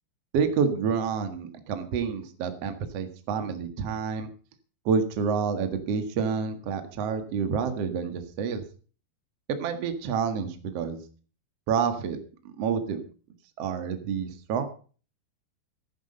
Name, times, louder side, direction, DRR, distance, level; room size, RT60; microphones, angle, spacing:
voice 1, 0.3-4.3 4.9-8.6 9.5-11.0 11.7-12.2 12.4-13.0 13.6-14.7, right 6 dB, 50° right, 8 dB, 2.0 m, -28 dB
14.5 x 11.0 x 5.4 m, 0.40 s
omnidirectional pair, 4.9 m